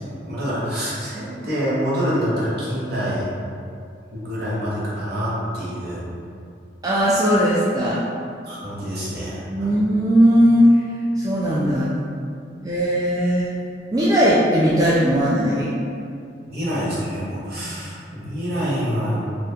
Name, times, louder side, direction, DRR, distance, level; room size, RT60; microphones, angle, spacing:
voice 1, 0.0-3.3 4.1-6.0 8.4-9.7 16.5-19.2, equal, 60° right, -9 dB, 1.0 m, -26 dB
voice 2, 6.8-8.0 9.4-10.8 11.2-11.9 12.6-13.5 13.9-15.8 17.6-17.7, equal, 20° right, -7 dB, 0.3 m, -18 dB
2.7 x 2.5 x 3.5 m, 2.4 s
head